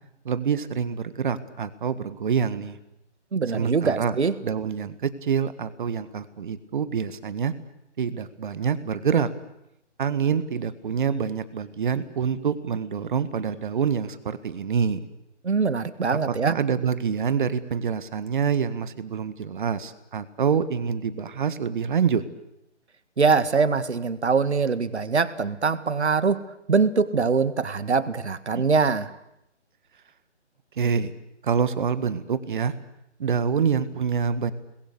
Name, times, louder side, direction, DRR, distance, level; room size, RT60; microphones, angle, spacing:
voice 1, 0.3-2.8 3.5-4.2 4.4-7.5 8.0-9.3 10.0-15.1 16.4-22.2 28.5-28.7 30.8-31.1 31.4-32.7 33.2-34.5, right 6 dB, 45° right, 14 dB, 1.8 m, -26 dB
voice 2, 3.3-4.4 15.4-16.6 23.2-26.4 26.7-29.1, right 5 dB, 65° right, 14 dB, 1.9 m, -23 dB
29.0 x 21.0 x 8.3 m, 0.83 s
figure-of-eight pair, 145°, 36 cm